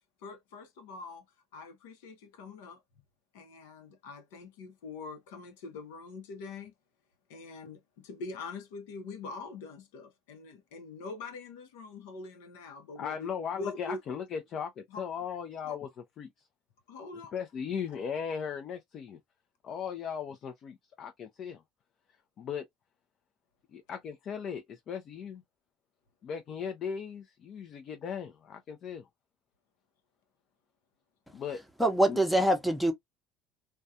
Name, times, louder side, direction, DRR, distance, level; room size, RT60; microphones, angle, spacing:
voice 1, 0.2-1.2 1.5-2.8 3.3-6.7 7.3-14.0 14.9-15.0 15.6-15.8 16.9-17.3, left 3 dB, 90° left, 0.8 m, -44 dB
voice 2, 13.0-15.9 16.2-16.3 17.3-19.2 19.6-21.6 22.4-22.6 23.7-25.4 26.2-29.1 31.3-31.6 32.1-32.2, left 7 dB, 50° left, 0.5 m, -37 dB
voice 3, 31.8-32.9, right 1 dB, ahead, 0.7 m, -24 dB
2.3 x 2.2 x 2.6 m
supercardioid pair, 105°, 0 cm